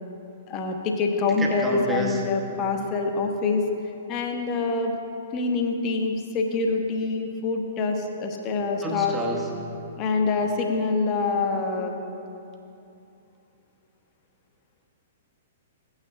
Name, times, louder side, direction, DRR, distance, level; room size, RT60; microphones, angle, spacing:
voice 1, 0.5-3.6 4.1-5.0 5.3-9.2 10.0-12.0, left 4 dB, 30° left, 3 dB, 1.0 m, -25 dB
voice 2, 1.3-2.3 8.8-9.5, equal, 10° right, -1 dB, 1.0 m, -30 dB
15.5 x 9.0 x 2.3 m, 2.7 s
figure-of-eight pair, 110°, 0 cm